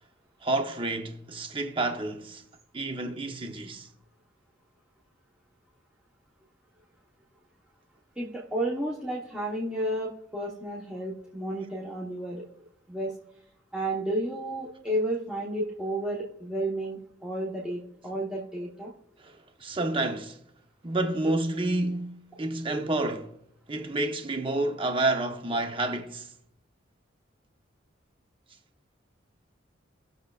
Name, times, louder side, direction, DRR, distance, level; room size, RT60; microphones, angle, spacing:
voice 1, 0.4-2.4 2.7-3.9 19.2-20.4 20.8-23.4 23.7-26.3, right 2 dB, 25° right, 0.8 m, -29 dB
voice 2, 8.2-12.4 12.9-13.2 13.7-18.9, right 1 dB, 5° right, 1.0 m, -32 dB
18.5 x 6.5 x 2.4 m
head